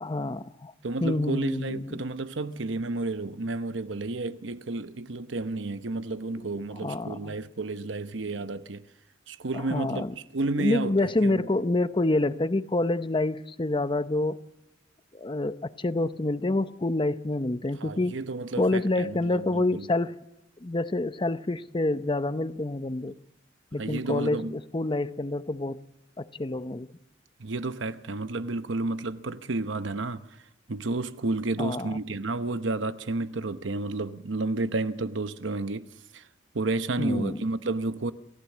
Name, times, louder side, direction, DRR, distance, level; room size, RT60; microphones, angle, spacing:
voice 1, 0.0-0.7 1.0-1.9 6.4-7.4 9.5-10.1 10.6-14.4 15.1-18.1 18.6-20.2 20.6-23.1 23.7-25.8 26.2-26.9 31.6-32.0 37.0-37.4, left 2 dB, 25° left, 0.7 m, -27 dB
voice 2, 0.8-8.9 9.3-10.9 11.2-11.5 17.8-19.9 23.8-24.6 27.4-30.2 30.7-35.9 36.1-36.2 36.5-38.1, right 2 dB, 70° right, 0.9 m, -31 dB
28.5 x 15.5 x 7.3 m
head